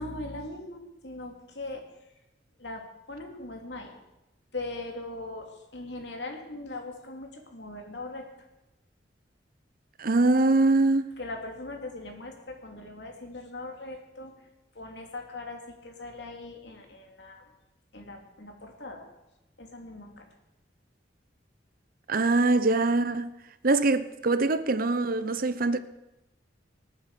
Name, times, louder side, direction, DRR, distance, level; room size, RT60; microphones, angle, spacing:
voice 1, 0.0-1.8 2.6-2.8 3.1-3.9 4.5-8.3 11.2-14.3 14.7-17.4 17.9-19.1 19.6-20.3, left 2 dB, 70° left, 2.9 m, -40 dB
voice 2, 10.0-11.1 22.1-23.3 23.6-25.8, right 2 dB, 55° right, 0.9 m, -23 dB
25.5 x 9.0 x 5.0 m
head